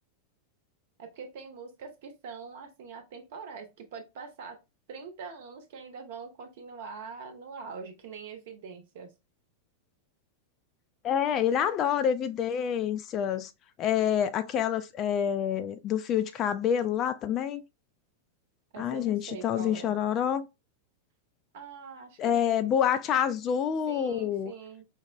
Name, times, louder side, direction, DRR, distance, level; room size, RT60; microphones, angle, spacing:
voice 1, 1.0-4.6 4.9-9.1 18.7-20.0 21.5-22.7 23.9-24.8, right 5 dB, 55° right, 0.8 m, -43 dB
voice 2, 11.0-13.5 13.8-17.6 18.8-20.5 22.2-24.5, left 9 dB, 35° left, 0.3 m, -27 dB
4.7 x 2.1 x 2.4 m
figure-of-eight pair, 90°, 0 cm